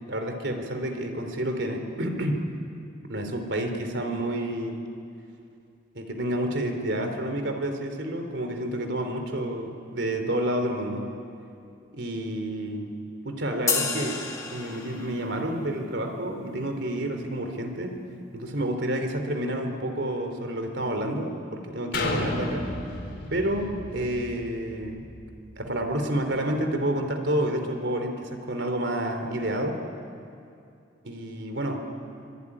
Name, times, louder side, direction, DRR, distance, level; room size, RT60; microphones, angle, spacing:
voice 1, 0.1-2.5 3.1-4.8 5.9-11.0 11.9-12.9 13.2-14.2 14.5-18.0 18.3-22.7 23.3-25.1 25.6-29.8 31.0-31.8, right 1 dB, 70° right, 5 dB, 3.3 m, -29 dB
sound 1, 13.7-15.3, left 4 dB, 15° left, 1.9 m, -30 dB
sound 2, 21.9-25.7 26.2-26.3, left 1 dB, 70° left, 4.2 m, -33 dB
25.0 x 22.0 x 9.9 m, 2.5 s
head